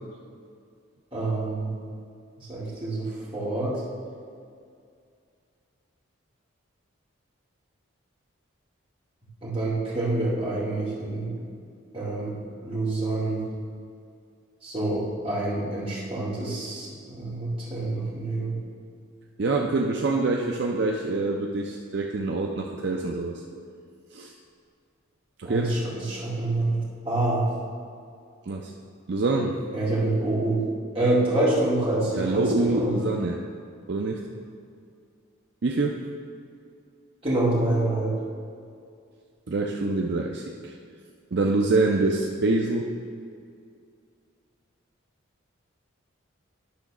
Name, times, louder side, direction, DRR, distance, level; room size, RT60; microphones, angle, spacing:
voice 1, 1.1-1.7 2.4-3.8 9.4-11.3 11.9-12.4 12.6-13.4 14.6-18.6 25.4-27.5 29.7-30.6 30.9-32.9 37.2-38.1, right 2 dB, 25° right, -7 dB, 2.1 m, -27 dB
voice 2, 19.4-23.4 24.1-24.3 25.4-25.7 28.5-28.7 29.1-29.6 32.1-33.4 33.9-34.2 35.6-36.0 39.5-40.7 41.3-42.9, right 3 dB, 55° right, 0 dB, 0.5 m, -25 dB
10.5 x 3.9 x 6.0 m, 2.3 s
head